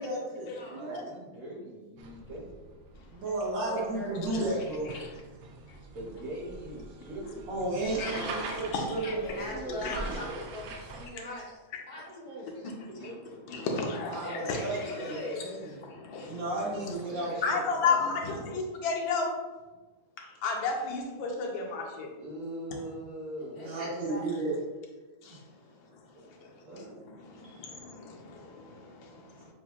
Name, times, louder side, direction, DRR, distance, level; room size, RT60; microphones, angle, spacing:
voice 1, 0.0-1.1 3.1-4.9 7.5-10.4 14.1-15.7 16.3-17.9 23.6-24.6, right 2 dB, 70° right, -4 dB, 1.8 m, -34 dB
voice 2, 0.5-2.5 5.8-7.5 9.0-10.2 12.0-13.8 16.2-16.8 17.1-18.3 22.1-23.7 26.1-26.9 27.4-27.6, right 1 dB, 50° right, -4 dB, 1.2 m, -43 dB
sound 1, 2.0-11.1, right 3 dB, 85° right, 1.4 m, -44 dB
voice 3, 3.6-4.2 9.2-11.5 11.9-12.0 14.2-15.6 23.5-24.5, left 2 dB, 60° left, -4 dB, 1.1 m, -41 dB
voice 4, 8.0-8.3 8.7-9.2 9.8-10.0 13.0-13.1 13.5-14.9 15.9-16.4 16.8-16.9 17.4-19.4 20.2-22.1 25.2-25.4 27.3-29.5, left 4 dB, 80° left, 1 dB, 1.5 m, -33 dB
6.9 x 2.6 x 2.4 m, 1.2 s
omnidirectional pair, 2.1 m